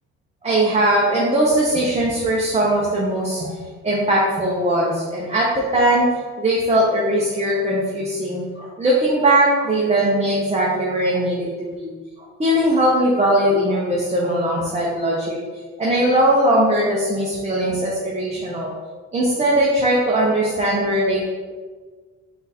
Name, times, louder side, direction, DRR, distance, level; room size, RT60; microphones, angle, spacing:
voice 1, 0.4-3.5 3.8-11.4 11.7-11.9 12.4-15.4 15.8-18.7 19.1-21.2, right 1 dB, 20° right, -5 dB, 0.7 m, -19 dB
3.7 x 2.6 x 4.1 m, 1.4 s
cardioid pair, 90°, 30 cm